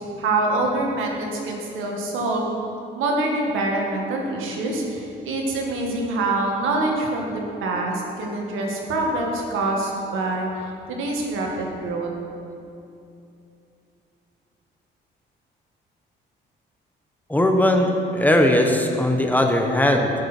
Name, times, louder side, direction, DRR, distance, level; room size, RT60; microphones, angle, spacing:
voice 1, 0.2-2.5 2.9-10.5 10.9-12.1, right 2 dB, 90° right, 0 dB, 1.9 m, -25 dB
voice 2, 17.3-20.1, left 1 dB, 10° left, 3 dB, 1.2 m, -19 dB
16.5 x 6.6 x 4.5 m, 2.7 s
cardioid pair, 90°, 20 cm